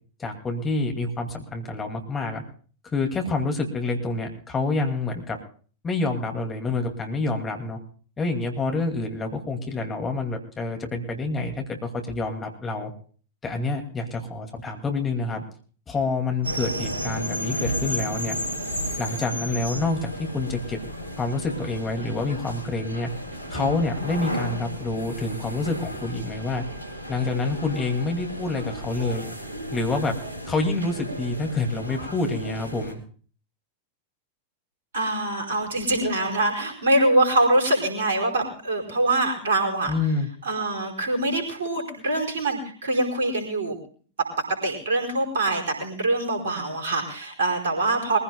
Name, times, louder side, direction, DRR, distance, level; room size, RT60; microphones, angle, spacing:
voice 1, 0.2-2.4 2.9-5.4 5.8-7.8 8.2-12.9 13.4-15.4 15.9-18.4 19.0-20.8 21.2-23.1 23.5-26.6 27.1-29.3 29.7-30.1 30.5-33.0 39.9-40.3, left 3 dB, 20° left, 3 dB, 2.5 m, -27 dB
sound 1, 16.4-32.9, equal, 80° right, 2.6 m, -33 dB
voice 2, 34.9-39.9 40.4-43.8 44.6-48.2, right 2 dB, 65° right, 1 dB, 4.8 m, -24 dB
23.0 x 15.5 x 2.3 m, 0.42 s
figure-of-eight pair, 90°, 0 cm